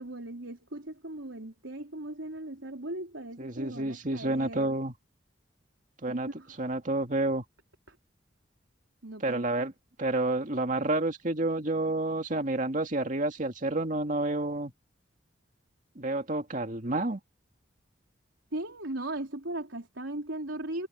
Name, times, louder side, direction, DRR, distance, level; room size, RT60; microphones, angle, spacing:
voice 1, 0.0-4.8 6.1-6.5 7.9-8.0 9.0-9.7 18.5-20.9, right 1 dB, 90° right, 3.7 m, -38 dB
voice 2, 3.4-4.9 6.0-6.3 6.6-7.4 9.2-9.7 10.0-14.7 16.0-17.2, right 2 dB, 45° right, 2.2 m, -29 dB
head